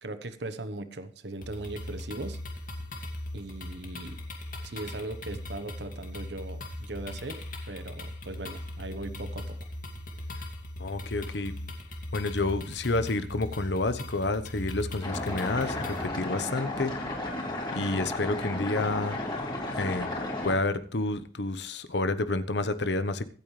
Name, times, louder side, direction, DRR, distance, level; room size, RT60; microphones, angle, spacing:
voice 1, 0.0-2.4 3.3-4.2 4.6-9.6, right 2 dB, 75° right, 11 dB, 1.1 m, -39 dB
sound 1, 1.4-16.1, left 1 dB, 50° left, 2.4 m, -39 dB
voice 2, 10.8-11.5 12.1-16.9 17.7-19.2 19.7-20.1 20.4-23.2, left 2 dB, 75° left, 11 dB, 1.0 m, -29 dB
sound 2, 15.0-20.5, left 2 dB, 25° left, 4.3 m, -33 dB
24.5 x 8.9 x 3.3 m, 0.43 s
head